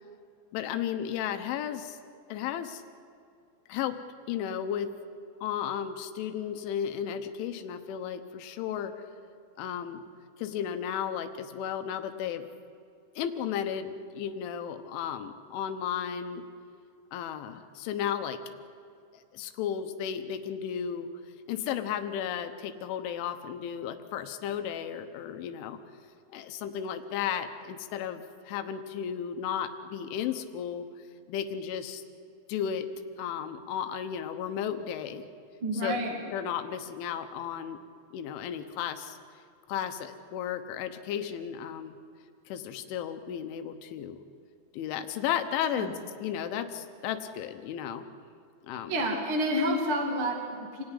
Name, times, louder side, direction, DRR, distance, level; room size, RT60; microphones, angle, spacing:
voice 1, 0.5-2.0 2.3-2.8 3.7-4.0 4.3-4.9 5.4-8.9 9.6-10.0 10.4-12.5 13.2-16.4 17.1-18.4 19.1-21.1 21.5-25.8 26.3-30.9 31.3-32.0 32.5-32.9 33.2-35.3 35.7-36.0 36.3-37.8 38.1-39.2 39.7-42.0 42.5-44.2 44.7-45.9 46.2-48.1 48.6-48.9, left 9 dB, 90° left, 7 dB, 3.6 m, -34 dB
voice 2, 35.6-36.2 45.7-45.9 48.9-50.8, equal, 35° right, 0 dB, 2.5 m, -29 dB
28.0 x 19.5 x 9.9 m, 2.3 s
omnidirectional pair, 5.3 m